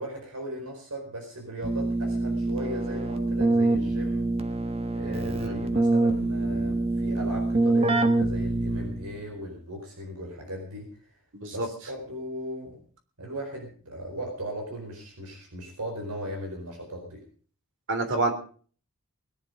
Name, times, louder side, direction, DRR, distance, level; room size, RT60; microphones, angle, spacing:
voice 1, 0.0-4.3 4.9-11.1 11.5-12.8 13.2-17.2, equal, 90° right, 2 dB, 4.8 m, -37 dB
Keyboard (musical), 1.6-9.2, right 2 dB, 25° right, 1.4 m, -25 dB
voice 2, 11.3-11.7 17.9-18.3, right 2 dB, 55° right, 6 dB, 3.4 m, -27 dB
20.5 x 11.0 x 5.1 m, 0.43 s
head